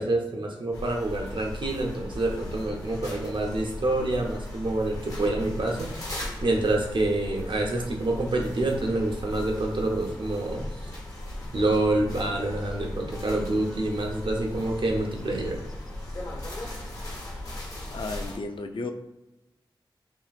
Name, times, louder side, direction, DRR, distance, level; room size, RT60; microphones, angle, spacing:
voice 1, 0.0-6.0 6.4-10.6 11.5-15.6, right 2 dB, 65° right, 1 dB, 0.8 m, -27 dB
sound 1, 0.7-18.4, left 1 dB, 40° left, 1.4 m, -37 dB
voice 2, 17.9-18.9, left 3 dB, 70° left, 5 dB, 0.5 m, -33 dB
5.6 x 3.0 x 2.4 m, 0.96 s
wide cardioid pair, 95°, 9 cm